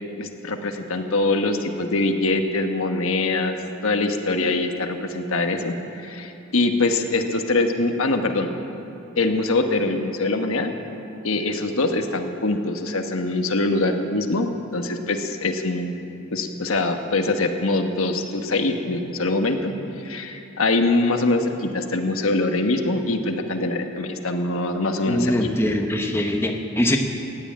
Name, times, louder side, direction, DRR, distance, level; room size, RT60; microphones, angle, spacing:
voice 1, 0.2-3.6 3.8-5.7 6.0-8.5 9.2-10.7 11.2-16.0 16.3-25.5, left 2 dB, 75° left, 5 dB, 1.2 m, -23 dB
voice 2, 25.1-27.0, left 1 dB, 10° left, 3 dB, 0.9 m, -22 dB
16.0 x 9.9 x 8.7 m, 3.0 s
head